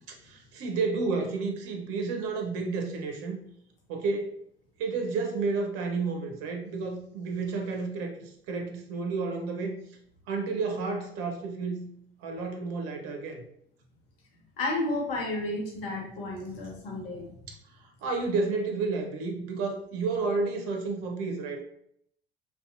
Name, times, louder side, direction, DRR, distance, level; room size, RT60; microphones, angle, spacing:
voice 1, 0.2-3.4 3.9-4.3 4.8-9.8 10.3-11.9 12.2-13.4 17.5-17.6 18.0-21.6, right 4 dB, 50° right, 3 dB, 0.7 m, -31 dB
voice 2, 14.6-17.3, left 2 dB, 70° left, -1 dB, 0.9 m, -32 dB
2.7 x 2.3 x 2.3 m, 0.70 s
figure-of-eight pair, 60°, 30 cm